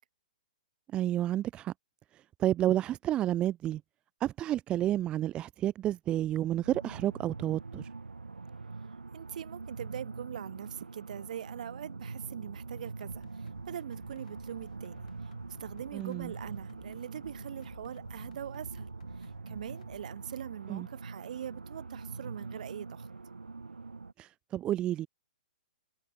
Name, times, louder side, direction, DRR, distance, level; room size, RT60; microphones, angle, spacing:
voice 1, 0.9-1.7 2.1-3.8 4.2-7.9 15.9-16.3 20.7-20.9 24.2-25.1, right 12 dB, 20° right, 0.5 m, -30 dB
sound 1, 6.6-24.1, right 4 dB, 90° right, 0.6 m, -44 dB
voice 2, 9.1-15.3 15.6-18.9 19.2-23.1, right 10 dB, 60° right, 5.2 m, -42 dB
sound 2, 12.8-20.0, left 10 dB, 60° left, 6.6 m, -57 dB
figure-of-eight pair, 125°, 5 cm